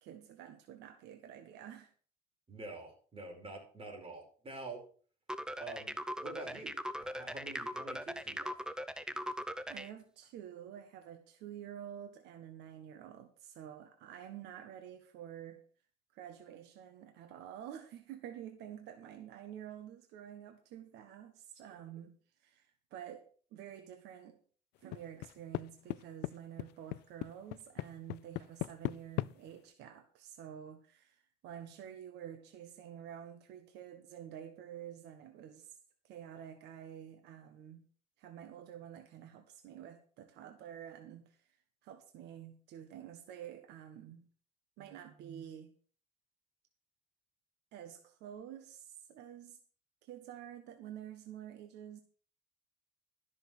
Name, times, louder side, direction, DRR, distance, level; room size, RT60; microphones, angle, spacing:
voice 1, 0.0-1.9 9.7-15.6 16.1-23.2 23.5-24.4 24.8-35.8 36.0-37.8 38.2-41.4 41.8-44.2 44.8-45.7 47.7-49.6 50.0-52.0, right 10 dB, 85° right, 6 dB, 1.5 m, -49 dB
voice 2, 2.5-4.8 5.6-5.9 6.2-8.6, right 2 dB, 35° right, 2 dB, 5.3 m, -47 dB
sound 1, 5.3-9.9, equal, 5° right, 0.7 m, -40 dB
sound 2, 24.9-25.6 25.9-26.3 26.6-29.3, left 20 dB, 85° left, 0.4 m, -36 dB
13.0 x 6.4 x 6.3 m, 0.43 s
cardioid pair, 110°, 17 cm